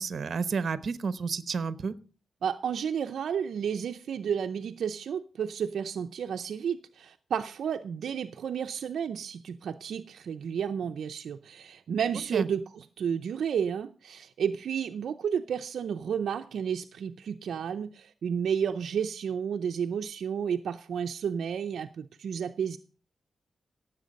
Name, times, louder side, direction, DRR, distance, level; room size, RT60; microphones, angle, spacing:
voice 1, 0.0-2.0 12.3-12.4, right 5 dB, 55° right, 13 dB, 0.9 m, -31 dB
voice 2, 2.4-22.8, right 7 dB, 75° right, 6 dB, 0.6 m, -32 dB
16.5 x 7.6 x 5.2 m, 0.38 s
wide cardioid pair, 120°, 0 cm